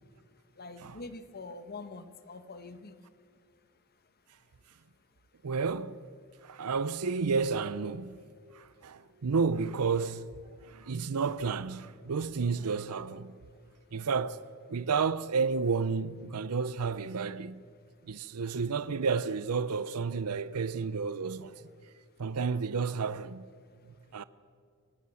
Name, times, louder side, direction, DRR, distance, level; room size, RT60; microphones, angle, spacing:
voice 1, 0.5-3.0, left 3 dB, 45° left, 1.3 m, -44 dB
voice 2, 5.4-6.0 6.4-8.2 8.5-10.3 10.6-13.4 13.9-14.4 14.7-17.6 18.1-21.7 22.2-23.5 24.1-24.2, right 5 dB, 85° right, 0.6 m, -31 dB
28.5 x 16.0 x 7.1 m
head